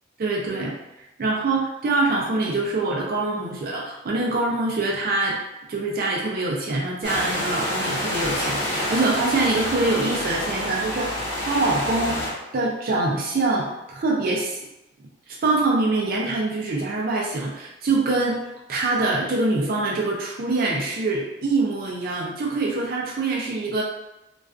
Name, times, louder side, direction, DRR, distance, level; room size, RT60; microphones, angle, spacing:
voice 1, 0.2-0.7 1.2-5.4 5.7-11.1 11.4-12.2 12.5-14.6 15.3-18.4 18.7-23.8, right 2 dB, 50° right, -3 dB, 0.4 m, -24 dB
sound 1, 7.0-12.3, left 1 dB, 60° left, 0.9 m, -27 dB
2.3 x 2.3 x 2.3 m, 0.92 s
head